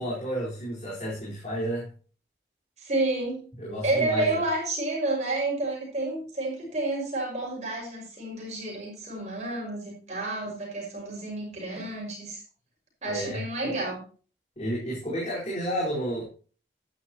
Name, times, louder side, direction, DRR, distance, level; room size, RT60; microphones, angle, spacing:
voice 1, 0.0-1.9 3.6-4.4 13.1-13.5 14.6-16.2, equal, 40° left, -8 dB, 4.5 m, -31 dB
voice 2, 2.8-3.5 3.8-12.4 13.0-14.0, right 2 dB, 40° right, -3 dB, 5.9 m, -30 dB
12.0 x 11.0 x 2.9 m, 0.39 s
head